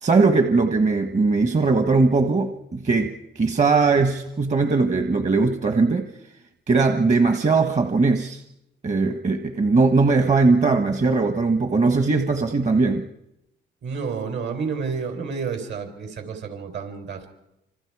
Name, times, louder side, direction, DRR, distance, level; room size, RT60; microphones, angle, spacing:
voice 1, 0.0-6.1 6.7-8.4 8.8-13.0, right 3 dB, 35° right, 6 dB, 1.4 m, -20 dB
voice 2, 13.8-17.3, right 5 dB, 65° right, 6 dB, 4.1 m, -30 dB
27.0 x 26.5 x 4.9 m, 0.88 s
cardioid pair, 90°, 20 cm